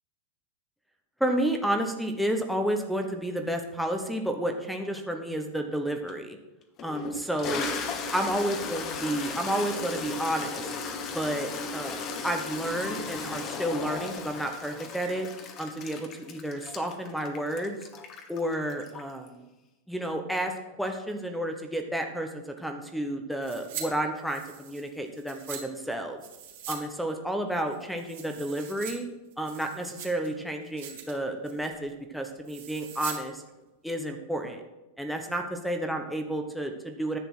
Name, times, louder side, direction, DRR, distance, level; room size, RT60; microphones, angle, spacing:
voice 1, 1.2-6.4 6.8-7.7 8.1-10.7 11.1-15.3 15.6-17.7 18.3-19.4 19.9-26.2 26.7-29.0 29.4-33.4 33.8-34.6 35.0-37.2, right 1 dB, ahead, 5 dB, 1.0 m, -31 dB
Toilet flush, 6.1-6.2 6.8-19.3, left 4 dB, 35° left, 1.3 m, -36 dB
sound 1, 23.4-23.9 24.2-25.6 26.2-26.8 27.1-27.2 27.7-28.9 29.3-30.3 30.6-31.1 31.4-31.8 32.4-33.2 33.5-33.6, right 9 dB, 70° right, 2.3 m, -41 dB
10.5 x 6.9 x 6.2 m, 1.0 s
supercardioid pair, 145°, 0 cm